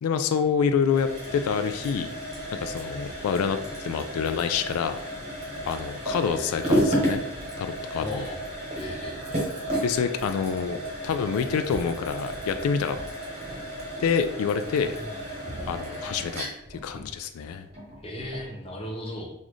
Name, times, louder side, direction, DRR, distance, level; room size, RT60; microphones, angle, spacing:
voice 1, 0.0-2.1 2.5-5.0 5.7-7.2 7.6-8.3 9.8-10.8 11.0-13.0 14.0-15.0 15.7-17.7, left 6 dB, 90° left, 10 dB, 0.3 m, -27 dB
sound 1, 0.8-18.5, equal, 30° right, 1.0 m, -32 dB
voice 2, 7.9-8.4 8.8-9.2 14.8-15.0 15.5-15.6 18.0-19.3, left 1 dB, 25° left, 0 dB, 0.6 m, -36 dB
3.9 x 2.5 x 3.0 m, 0.80 s
head